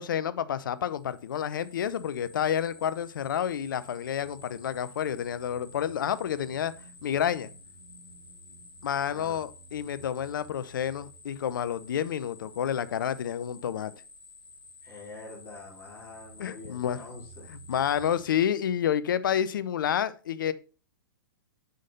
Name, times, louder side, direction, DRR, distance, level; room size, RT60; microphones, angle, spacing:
voice 1, 0.0-6.7 7.0-7.5 8.8-13.9 16.4-17.0 17.5-20.5, left 9 dB, 60° left, 0.6 m, -29 dB
sound 1, 0.9-18.3, left 1 dB, 80° left, 1.8 m, -51 dB
voice 2, 9.1-9.4 14.8-17.5, left 3 dB, 20° left, 3.5 m, -46 dB
6.3 x 5.3 x 4.0 m
figure-of-eight pair, 115°, 12 cm